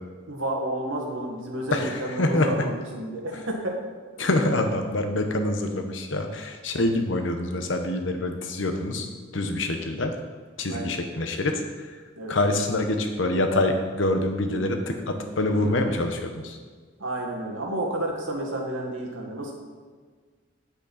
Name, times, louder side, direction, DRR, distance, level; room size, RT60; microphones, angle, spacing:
voice 1, 0.3-3.8 10.7-10.9 12.2-12.4 17.0-19.5, right 1 dB, 85° right, 0 dB, 2.0 m, -31 dB
voice 2, 1.7-2.6 4.2-9.1 9.3-10.1 10.6-11.6 12.3-16.6, left 1 dB, 75° left, 5 dB, 1.1 m, -25 dB
9.2 x 8.2 x 4.2 m, 1.5 s
head